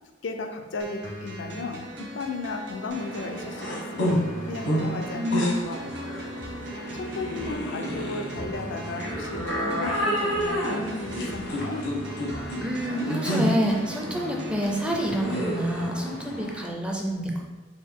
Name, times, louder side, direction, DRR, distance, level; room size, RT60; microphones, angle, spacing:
voice 1, 0.2-6.0 6.9-11.9, left 3 dB, 70° left, 5 dB, 0.4 m, -35 dB
sound 1, 0.8-15.8, equal, 65° right, 0.7 m, -40 dB
sound 2, 2.9-16.6, equal, 90° left, 1.2 m, -30 dB
voice 2, 5.1-5.6 12.6-17.4, equal, 5° right, 0 dB, 0.4 m, -28 dB
sound 3, 5.6-12.8, equal, 80° right, 1.3 m, -45 dB
4.4 x 2.8 x 3.6 m, 1.3 s
head